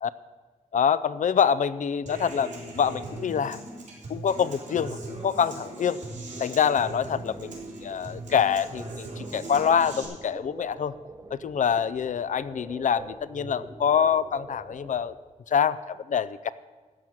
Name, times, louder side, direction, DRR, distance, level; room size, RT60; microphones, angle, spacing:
voice 1, 0.7-3.6 4.1-6.0 6.4-10.9 11.3-15.1 15.5-16.5, left 7 dB, 75° left, 16 dB, 0.5 m, -25 dB
Human voice / Acoustic guitar, 2.1-10.0, right 2 dB, 75° right, 3.6 m, -39 dB
sound 1, 6.9-15.2, right 2 dB, 25° right, 0.8 m, -46 dB
13.5 x 6.3 x 8.8 m, 1.4 s
wide cardioid pair, 160°, 13 cm